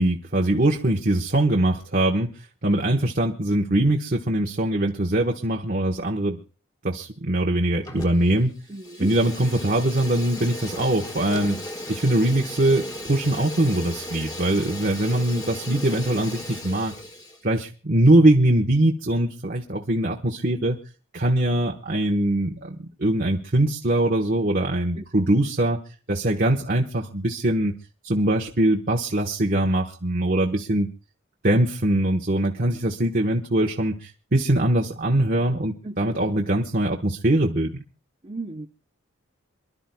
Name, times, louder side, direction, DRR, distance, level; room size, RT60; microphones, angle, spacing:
voice 1, 0.0-2.3 2.6-6.4 6.8-8.5 9.0-11.6 11.9-16.9 17.4-20.8 21.1-25.8 26.1-27.7 28.0-30.9 31.4-37.8, right 1 dB, 45° right, 0 dB, 1.2 m, -22 dB
Fire, 7.8-8.4 8.7-17.4, left 1 dB, 20° left, 1.6 m, -36 dB
voice 2, 8.7-9.1 25.0-25.1 35.8-36.1 38.2-38.7, right 2 dB, 30° right, 3 dB, 0.7 m, -34 dB
27.5 x 12.0 x 2.2 m, 0.36 s
head